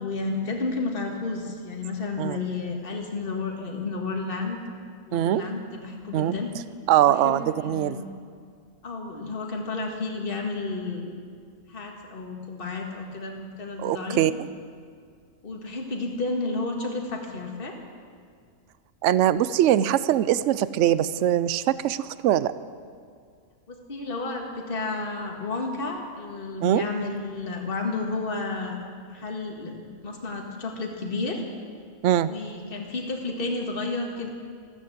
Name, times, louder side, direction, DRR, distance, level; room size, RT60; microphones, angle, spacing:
voice 1, 0.0-4.6 5.1-6.5 7.0-8.1 8.8-11.1 11.7-14.2 15.4-17.8 23.7-28.8 29.1-31.4 32.2-34.3, left 3 dB, 40° left, 1 dB, 1.9 m, -31 dB
voice 2, 5.1-5.4 6.1-6.4 6.9-8.0 13.8-14.3 19.0-22.5 26.6-26.8 32.0-32.3, right 12 dB, 70° right, 16 dB, 0.9 m, -22 dB
14.0 x 13.0 x 7.9 m, 2.1 s
omnidirectional pair, 1.4 m